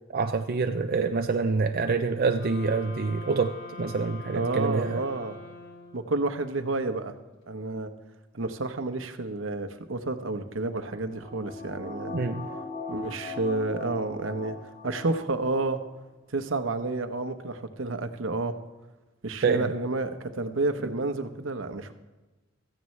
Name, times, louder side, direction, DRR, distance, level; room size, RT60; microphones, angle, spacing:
voice 1, 0.1-5.0 12.1-12.5 19.4-19.7, right 4 dB, 50° right, 6 dB, 0.5 m, -26 dB
sound 1, 2.4-6.2, left 3 dB, 60° left, 2.6 m, -44 dB
voice 2, 4.3-5.3 5.9-7.1 7.5-7.9 8.3-12.2 12.9-14.6 14.8-15.8 16.3-18.5 19.2-21.9, right 2 dB, 75° right, 9 dB, 1.0 m, -30 dB
sound 2, 10.7-15.5 15.9-16.0, left 3 dB, 40° left, 4.3 m, -39 dB
16.5 x 14.0 x 3.2 m, 1.1 s
head